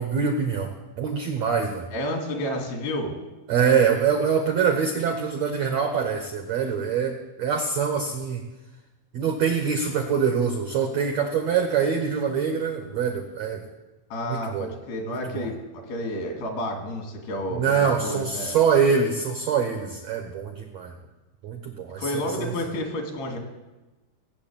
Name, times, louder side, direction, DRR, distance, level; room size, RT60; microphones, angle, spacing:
voice 1, 0.0-1.9 3.5-8.4 9.1-13.6 14.2-14.7 15.1-15.5 17.6-21.0 21.4-22.1 22.4-22.5, right 6 dB, 75° right, 5 dB, 1.5 m, -24 dB
voice 2, 1.9-3.1 14.1-15.6 15.9-18.6 22.0-23.4, left 1 dB, 75° left, 2 dB, 4.7 m, -30 dB
18.0 x 7.6 x 8.9 m, 1.1 s
omnidirectional pair, 4.6 m